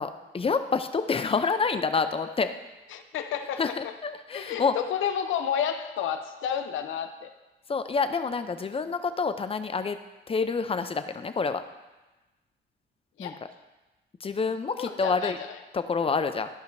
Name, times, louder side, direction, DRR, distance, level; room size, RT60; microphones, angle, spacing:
voice 1, 0.0-2.5 3.6-4.7 7.7-10.0 10.3-11.6 13.2-13.3 14.2-15.4 15.7-16.5, left 5 dB, 30° left, 10 dB, 0.6 m, -27 dB
voice 2, 2.9-3.8 4.3-7.3 13.2-13.4 14.8-15.6, left 8 dB, 80° left, 7 dB, 0.7 m, -31 dB
14.0 x 5.0 x 2.7 m, 1.1 s
cardioid pair, 90°, 20 cm